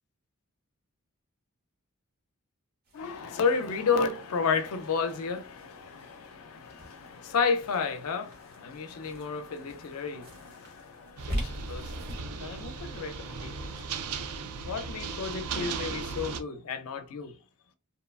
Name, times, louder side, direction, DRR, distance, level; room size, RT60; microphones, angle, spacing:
voice 1, 2.9-13.5 14.7-17.3, left 5 dB, 70° left, 0.5 m, -32 dB
sound 1, 2.9-12.2, equal, 50° right, 0.9 m, -43 dB
sound 2, 11.2-16.4, right 5 dB, 80° right, 0.4 m, -37 dB
2.8 x 2.2 x 2.3 m
head